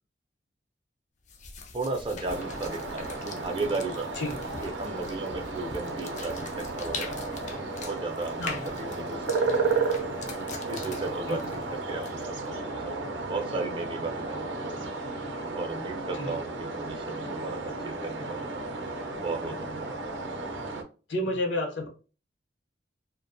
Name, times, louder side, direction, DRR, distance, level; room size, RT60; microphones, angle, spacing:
sound 1, 1.3-12.5, left 4 dB, 40° left, 0.4 m, -43 dB
voice 1, 1.7-4.2 4.6-7.3 7.8-9.9 10.7-15.0 15.5-18.7 19.2-20.0, right 3 dB, 30° right, 4 dB, 0.4 m, -35 dB
sound 2, 2.3-20.8, right 3 dB, 80° right, 0.5 m, -33 dB
voice 2, 21.1-21.9, left 1 dB, 80° left, 1 dB, 0.9 m, -30 dB
2.4 x 2.2 x 2.5 m, 0.35 s
head